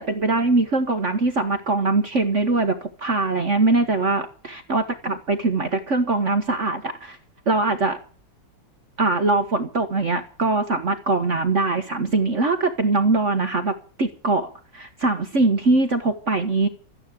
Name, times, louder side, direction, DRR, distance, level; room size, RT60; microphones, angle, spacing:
voice 1, 0.0-7.2 7.5-8.0 9.0-13.7 14.0-16.7, right 3 dB, 40° right, 7 dB, 1.5 m, -22 dB
13.5 x 10.0 x 8.3 m, 0.41 s
omnidirectional pair, 2.1 m